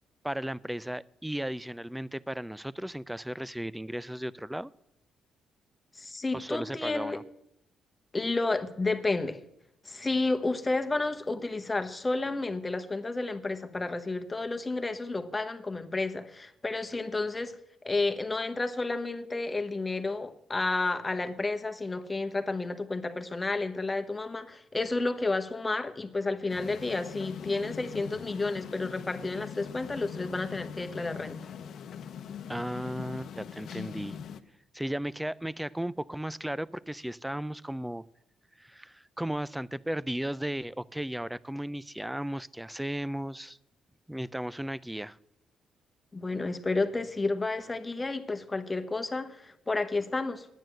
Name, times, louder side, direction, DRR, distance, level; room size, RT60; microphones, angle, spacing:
voice 1, 0.2-4.7 6.3-7.2 32.5-34.2 34.7-38.0 38.6-43.6 44.1-45.2, right 1 dB, 5° right, 0.4 m, -35 dB
voice 2, 5.9-7.2 8.1-9.4 9.8-17.6 17.8-31.4 46.1-50.5, left 3 dB, 20° left, 1.1 m, -31 dB
sound 1, 26.5-34.4, left 7 dB, 70° left, 0.8 m, -42 dB
10.5 x 9.3 x 7.6 m
cardioid pair, 90°, 0 cm